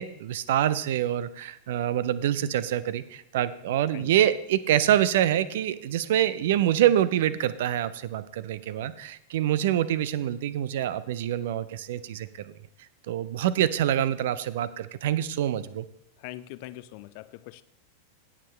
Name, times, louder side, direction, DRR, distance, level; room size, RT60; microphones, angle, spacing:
voice 1, 0.0-12.5 13.1-15.9, right 11 dB, 55° right, 16 dB, 0.5 m, -26 dB
voice 2, 8.7-9.0 16.2-17.6, left 16 dB, 45° left, 16 dB, 0.5 m, -43 dB
17.0 x 7.3 x 3.2 m, 0.76 s
figure-of-eight pair, 90°, 0 cm